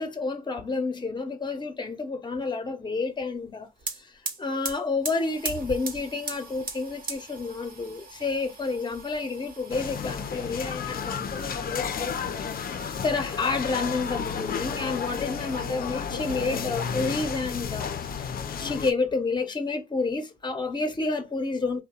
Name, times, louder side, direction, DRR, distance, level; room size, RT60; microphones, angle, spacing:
voice 1, 0.0-3.7 4.0-4.1 4.4-18.3 18.6-21.8, left 3 dB, 25° left, 0.8 m, -30 dB
sound 1, 3.5-3.6 3.8-15.7 16.2-16.9 17.2-18.2, right 4 dB, 60° right, 1.1 m, -41 dB
sound 2, 9.7-18.9, left 7 dB, 60° left, 0.5 m, -32 dB
2.6 x 2.2 x 2.3 m
cardioid pair, 60°, 17 cm